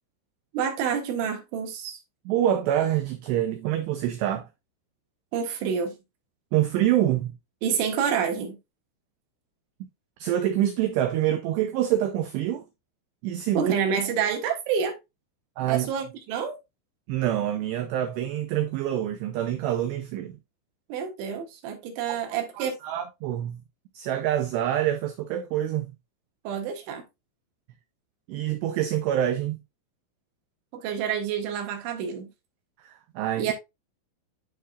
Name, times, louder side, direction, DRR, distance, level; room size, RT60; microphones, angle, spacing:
voice 1, 0.5-2.0 5.3-6.0 7.6-8.6 13.6-15.0 15.7-16.6 20.9-22.8 26.5-27.0 30.7-32.3 33.4-33.5, right 7 dB, 70° right, 3.6 m, -28 dB
voice 2, 2.3-4.5 6.5-7.3 10.2-12.6 13.2-13.7 15.6-15.9 17.1-20.4 22.1-22.2 22.6-23.6 24.0-25.9 28.3-29.6 32.8-33.5, right 11 dB, 90° right, 2.4 m, -26 dB
11.0 x 4.4 x 2.4 m
omnidirectional pair, 5.8 m